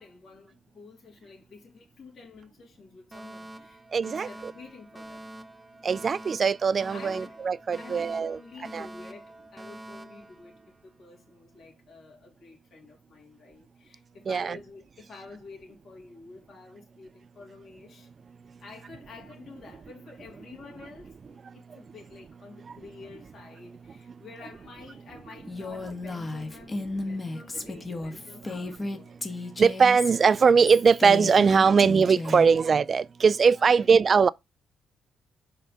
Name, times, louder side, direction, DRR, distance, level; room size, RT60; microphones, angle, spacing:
voice 1, 0.0-5.3 6.9-7.4 7.8-29.2 33.6-33.9, left 4 dB, 55° left, 3.1 m, -49 dB
Alarm, 3.1-11.1, right 1 dB, 15° right, 1.0 m, -45 dB
voice 2, 3.9-4.5 5.8-8.4 8.7-8.9 14.3-14.6 29.6-34.3, right 5 dB, 40° right, 0.3 m, -21 dB
Female speech woman speaking, 25.5-32.5, left 2 dB, 25° left, 1.4 m, -34 dB
5.4 x 3.8 x 5.6 m
cardioid pair, 90°, 0 cm